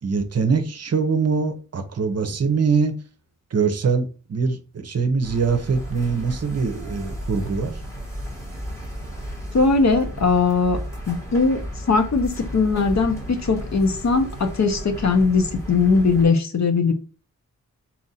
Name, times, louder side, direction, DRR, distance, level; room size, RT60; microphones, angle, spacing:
voice 1, 0.0-2.9 3.5-7.8, right 5 dB, 50° right, 0.7 m, -23 dB
sound 1, 5.2-16.3, equal, 10° left, 1.3 m, -34 dB
voice 2, 9.5-10.8 11.1-11.6 11.9-16.9, left 4 dB, 55° left, 0.8 m, -20 dB
4.2 x 2.5 x 4.1 m
wide cardioid pair, 135°, 32 cm